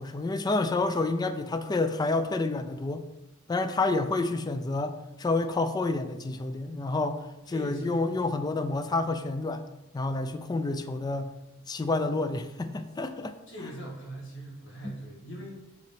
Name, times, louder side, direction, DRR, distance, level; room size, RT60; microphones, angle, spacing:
voice 1, 0.0-3.0 3.5-7.2 7.5-9.6 9.9-11.3 11.7-13.3 14.8-14.9, left 3 dB, 20° left, 9 dB, 0.3 m, -29 dB
voice 2, 7.5-8.2 13.5-15.7, right 1 dB, 65° left, -2 dB, 1.7 m, -41 dB
7.8 x 3.9 x 3.4 m, 0.96 s
head